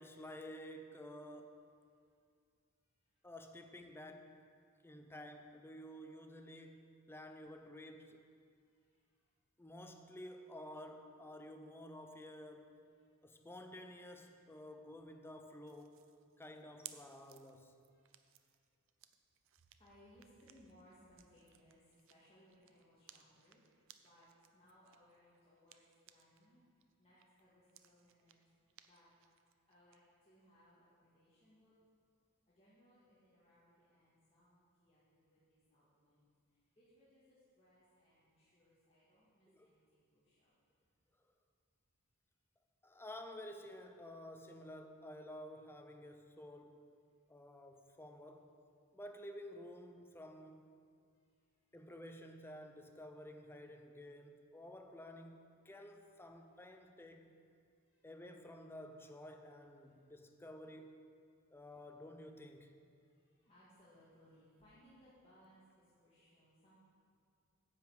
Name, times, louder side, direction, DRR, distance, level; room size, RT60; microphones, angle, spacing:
voice 1, 0.0-1.6 3.2-4.5 4.8-8.2 9.6-12.8 13.2-16.0 16.4-17.7 39.5-39.7 42.8-46.9 47.3-48.5 48.9-50.7 51.7-57.4 58.0-61.1 61.5-62.8, left 1 dB, 10° left, 0.6 m, -52 dB
voice 2, 3.0-3.3 8.6-9.3 13.0-13.1 17.9-18.5 19.8-23.6 24.0-24.3 24.5-26.7 26.9-28.6 28.8-29.1 29.7-31.7 32.5-36.3 36.8-40.5 57.8-58.0 59.8-59.9 63.0-66.8, equal, 25° left, 1.7 m, -67 dB
sound 1, 15.7-26.5 26.8-30.0, right 12 dB, 60° right, 0.5 m, -61 dB
9.8 x 5.3 x 7.8 m
head